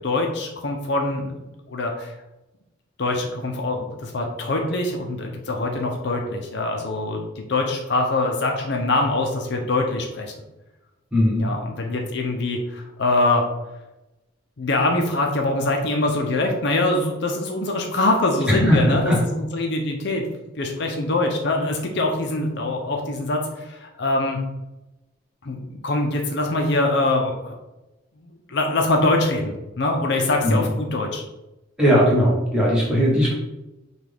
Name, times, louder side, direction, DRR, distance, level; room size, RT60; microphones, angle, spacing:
voice 1, 0.0-1.4 1.7-2.1 3.0-10.3 11.4-13.4 14.6-20.3 20.6-24.4 25.4-27.6 28.2-31.2, left 2 dB, 60° left, 2 dB, 0.6 m, -23 dB
voice 2, 11.1-11.5 18.5-19.1 30.4-30.6 31.8-33.3, equal, 5° right, -6 dB, 1.3 m, -18 dB
5.9 x 2.4 x 3.4 m, 0.99 s
head